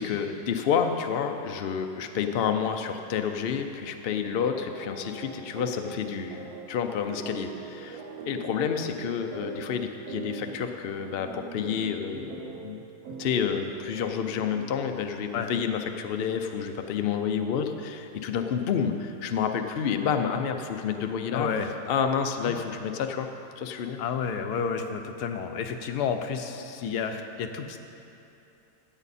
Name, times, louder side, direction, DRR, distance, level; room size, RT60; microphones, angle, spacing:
voice 1, 0.0-12.3 12.6-12.8 13.2-21.5 21.9-23.3 23.6-24.0, left 7 dB, 60° left, 6 dB, 0.6 m, -29 dB
sound 1, 4.1-15.8, right 5 dB, 70° right, 1.3 m, -42 dB
voice 2, 21.3-21.7 22.5-22.6 24.0-27.8, left 6 dB, 80° left, 6 dB, 1.3 m, -31 dB
14.5 x 8.1 x 4.2 m, 2.9 s
omnidirectional pair, 1.7 m